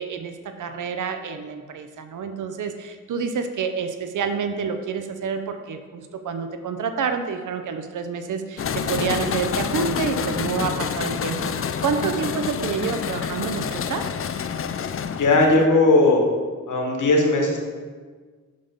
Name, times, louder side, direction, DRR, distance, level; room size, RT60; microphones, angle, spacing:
voice 1, 0.0-14.1, right 5 dB, 90° right, 8 dB, 0.6 m, -28 dB
sound 1, 8.6-15.7, left 7 dB, 45° left, 0.4 m, -28 dB
voice 2, 15.2-16.2 16.7-17.6, left 2 dB, 85° left, 1 dB, 1.3 m, -17 dB
5.7 x 5.2 x 5.1 m, 1.5 s
cardioid pair, 70°, 30 cm